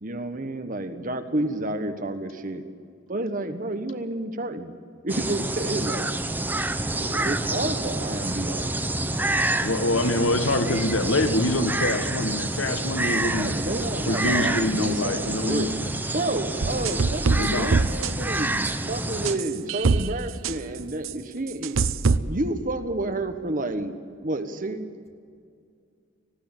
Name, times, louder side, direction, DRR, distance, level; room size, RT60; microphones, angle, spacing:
voice 1, 0.0-2.6 3.1-4.7 5.0-6.2 6.9-8.8 13.3-15.7 16.1-21.8 22.3-24.8, right 2 dB, 40° right, 7 dB, 1.3 m, -30 dB
sound 1, 5.1-19.3, right 2 dB, 10° right, 0.8 m, -28 dB
voice 2, 9.6-13.5 14.1-15.7 17.3-17.7, left 2 dB, 75° left, 9 dB, 1.4 m, -25 dB
voice 3, 14.4-15.0 15.4-16.2, left 1 dB, 30° left, 3 dB, 2.3 m, -44 dB
sound 2, 16.6-18.1 18.6-18.7 19.2-20.1 20.4-20.5 21.0-21.1 21.6-22.2, right 4 dB, 85° right, 0.7 m, -22 dB
19.5 x 16.0 x 8.9 m, 2.3 s
head